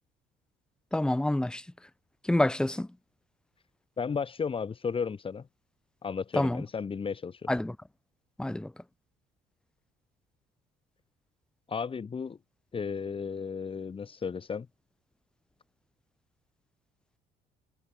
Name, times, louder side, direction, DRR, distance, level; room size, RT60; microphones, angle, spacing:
voice 1, 0.9-1.6 2.3-2.9 6.3-6.6 7.5-7.7 8.4-8.7, left 1 dB, 5° left, 0.9 m, -27 dB
voice 2, 4.0-5.5 6.0-7.5 11.7-12.4 12.7-14.7, left 6 dB, 30° left, 4.1 m, -34 dB
cardioid pair, 110°, 17 cm